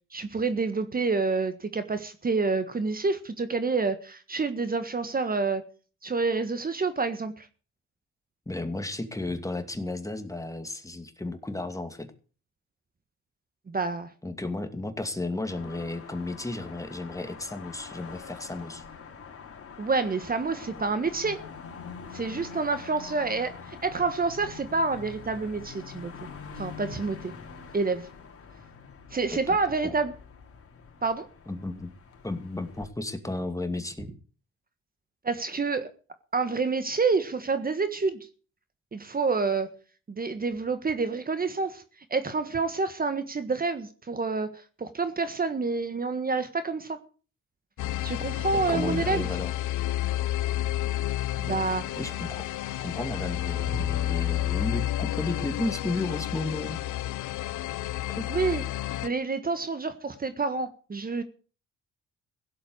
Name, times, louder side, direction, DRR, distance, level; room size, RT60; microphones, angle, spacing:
voice 1, 0.1-5.6 6.0-7.4 13.7-14.1 19.8-21.4 22.1-26.3 26.6-27.3 27.7-28.1 29.1-30.1 31.0-31.3 35.2-35.9 36.3-38.2 38.9-39.7 40.1-41.8 42.1-47.0 48.0-49.3 51.4-51.8 58.3-58.6 59.0-61.2, right 4 dB, 30° right, 1.6 m, -28 dB
voice 2, 8.5-12.1 14.2-18.8 29.3-29.6 29.8-29.9 31.5-31.9 32.2-34.1 48.5-49.5 51.5-51.6 52.0-52.5 52.8-56.8 58.1-58.3, left 2 dB, 10° left, 2.4 m, -33 dB
sound 1, 15.5-32.9, left 6 dB, 50° left, 3.9 m, -45 dB
sound 2, 47.8-59.1, left 14 dB, 80° left, 0.9 m, -30 dB
16.5 x 8.0 x 8.0 m
cardioid pair, 90°, 30 cm